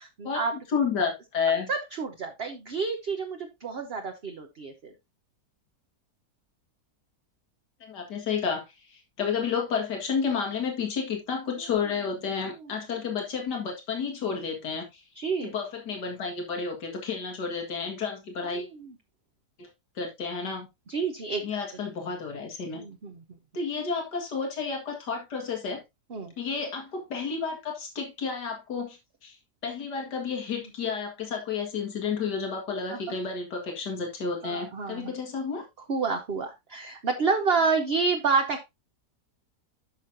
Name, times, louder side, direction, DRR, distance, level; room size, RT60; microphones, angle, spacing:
voice 1, 0.0-0.5 1.7-4.9 12.5-12.7 15.1-15.5 18.5-18.9 20.9-21.5 22.7-23.2 26.1-26.3 30.6-30.7 32.9-33.0 34.4-35.1 35.9-38.7, right 4 dB, 45° right, 1.1 m, -29 dB
voice 2, 0.7-1.7 7.8-8.6 8.9-15.0 15.4-18.7 19.6-19.7 20.0-20.7 21.4-22.8 23.5-25.8 26.4-29.4 29.6-35.7, left 5 dB, 85° left, 2.5 m, -31 dB
11.5 x 6.2 x 2.7 m
omnidirectional pair, 1.7 m